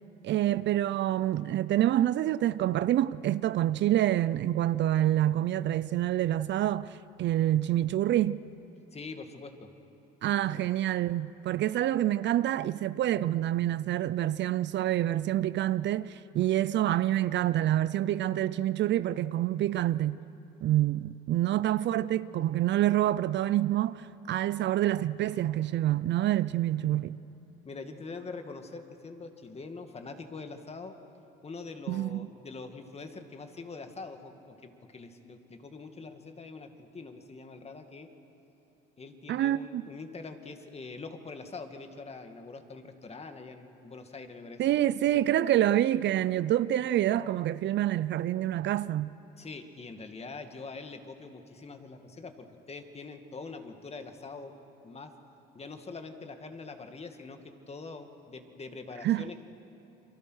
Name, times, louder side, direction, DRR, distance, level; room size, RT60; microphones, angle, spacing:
voice 1, 0.2-8.4 10.2-20.2 20.6-27.2 31.9-32.3 39.3-39.8 44.6-49.1 59.0-59.3, right 13 dB, 60° right, 0.6 m, -27 dB
voice 2, 8.9-9.7 10.5-10.6 27.6-30.9 31.4-38.1 39.0-44.9 45.1-45.2 49.4-54.5 54.8-55.1 55.5-57.4 57.7-59.4, left 4 dB, 30° left, 2.2 m, -44 dB
29.5 x 23.5 x 6.5 m
cardioid pair, 90°, 21 cm